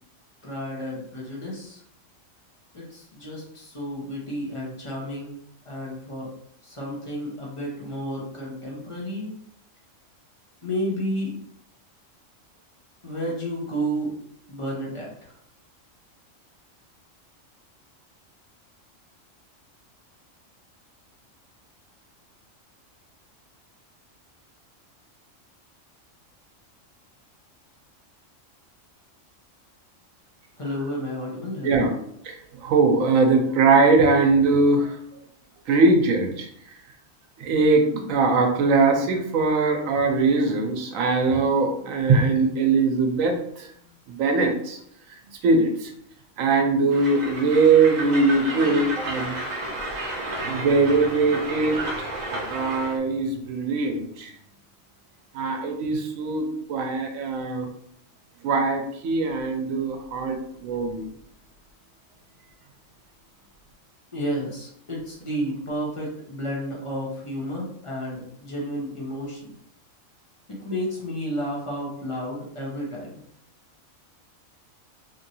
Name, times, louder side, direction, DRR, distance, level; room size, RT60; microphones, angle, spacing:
voice 1, 0.4-1.8 2.7-5.3 5.6-6.3 6.6-9.3 10.6-11.3 13.0-14.1 14.5-15.4 30.6-31.8 64.1-69.5 70.6-73.2, equal, 30° left, -3 dB, 0.7 m, -31 dB
voice 2, 32.3-35.0 35.7-36.5 37.4-43.7 44.1-44.8 45.4-45.9 46.4-49.4 50.1-54.3 55.3-57.7 58.4-61.1, right 3 dB, 85° right, 4 dB, 1.0 m, -21 dB
Train, 46.9-53.0, right 1 dB, 45° right, 0.6 m, -32 dB
3.0 x 2.6 x 2.6 m, 0.69 s
omnidirectional pair, 1.4 m